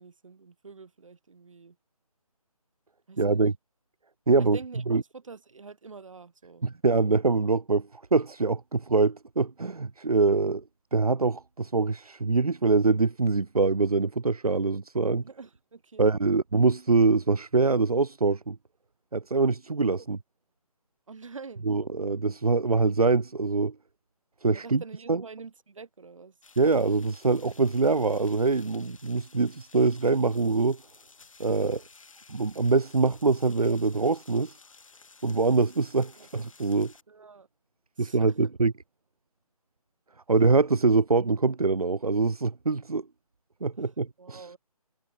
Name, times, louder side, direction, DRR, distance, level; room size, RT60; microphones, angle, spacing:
voice 1, 0.0-1.8 3.1-3.4 4.4-6.7 15.2-16.1 20.0-20.1 21.1-21.7 24.5-26.4 36.2-36.3 37.1-37.5 38.0-38.4 43.8-44.6, right 4 dB, 60° right, 4.8 m, -46 dB
voice 2, 3.2-3.5 4.3-4.6 4.9-5.0 6.6-10.6 10.9-15.2 16.0-18.6 19.1-20.2 21.7-23.7 24.4-24.8 25.1-25.2 26.6-30.8 31.4-31.8 32.3-34.6 35.2-36.9 38.0-38.7 40.3-43.0 43.6-44.4, right 3 dB, 75° right, 1.5 m, -24 dB
sound 1, 26.4-37.0, left 4 dB, 60° left, 4.5 m, -55 dB
figure-of-eight pair, 150°, 19 cm